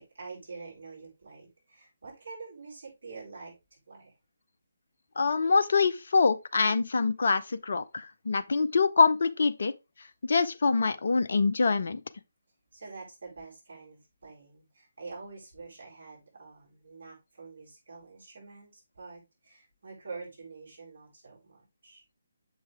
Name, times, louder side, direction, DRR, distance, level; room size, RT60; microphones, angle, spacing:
voice 1, 0.0-4.1 12.7-22.0, right 4 dB, 50° right, 4.8 m, -46 dB
voice 2, 5.2-9.7 10.3-12.0, left 4 dB, 50° left, 0.5 m, -25 dB
6.6 x 5.6 x 3.4 m
figure-of-eight pair, 145°, 0 cm